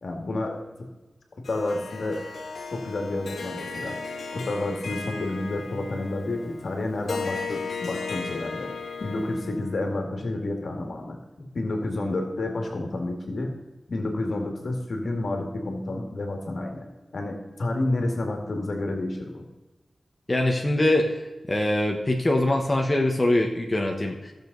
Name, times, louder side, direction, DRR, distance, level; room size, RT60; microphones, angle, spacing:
voice 1, 0.0-0.9 1.3-2.2 2.7-4.0 4.3-8.7 9.0-11.2 11.5-13.5 13.9-16.9 17.1-19.5, left 2 dB, 70° left, 3 dB, 2.0 m, -30 dB
Harp, 1.4-9.9, left 4 dB, 90° left, 0.9 m, -36 dB
voice 2, 20.3-21.2 21.5-24.3, left 1 dB, 25° left, 1 dB, 1.3 m, -23 dB
16.0 x 6.9 x 4.0 m, 1.1 s
wide cardioid pair, 70°, 0 cm